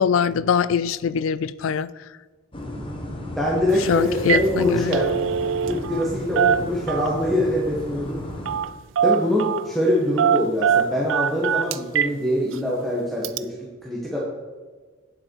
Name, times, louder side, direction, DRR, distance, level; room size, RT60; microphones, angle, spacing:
voice 1, 0.0-1.9 3.9-5.0, left 7 dB, 70° left, 0.3 m, -22 dB
sound 1, 2.5-8.6, equal, 25° left, 1.1 m, -34 dB
voice 2, 3.3-5.1 5.6-8.2 9.0-13.6 13.8-14.2, left 1 dB, ahead, 1.2 m, -24 dB
Telephone, 3.7-3.9 4.2-4.5 4.8-6.1 6.4-7.3 8.5-8.7 9.0-9.7 10.2-12.2 12.5-12.6 13.2-13.4, right 8 dB, 60° right, 0.4 m, -22 dB
9.0 x 7.6 x 4.6 m
head